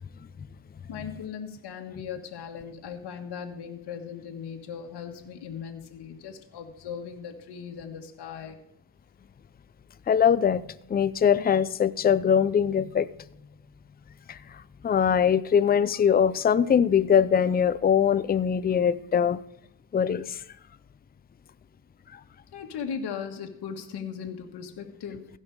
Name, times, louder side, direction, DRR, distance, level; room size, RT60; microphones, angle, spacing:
voice 1, 0.9-8.6 22.5-25.3, left 7 dB, 60° left, 3 dB, 1.7 m, -38 dB
voice 2, 10.1-10.6 10.9-13.1 14.3-19.4 19.9-20.4, left 8 dB, 20° left, 14 dB, 0.5 m, -22 dB
16.0 x 5.6 x 4.8 m, 0.78 s
supercardioid pair, 75°, 45 cm